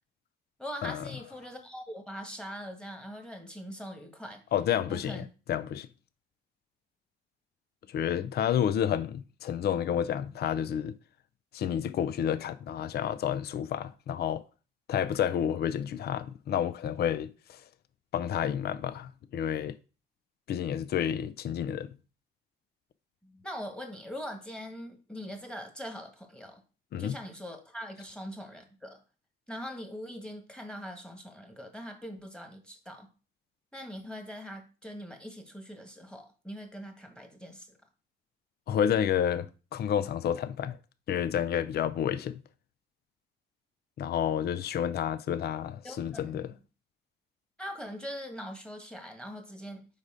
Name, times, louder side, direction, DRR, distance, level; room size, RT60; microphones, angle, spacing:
voice 1, 0.6-4.4 4.9-5.3 23.2-26.6 27.0-29.0 29.5-33.1 33.7-37.8 45.8-46.5 47.6-49.9, equal, 5° left, 1.5 m, -42 dB
voice 2, 4.5-5.9 7.9-10.9 11.5-14.4 14.9-17.6 18.1-19.8 20.5-21.9 26.9-27.2 38.7-40.8 41.1-42.4 44.0-46.5, left 9 dB, 55° left, 0.5 m, -30 dB
4.9 x 4.1 x 5.0 m
cardioid pair, 90°, 20 cm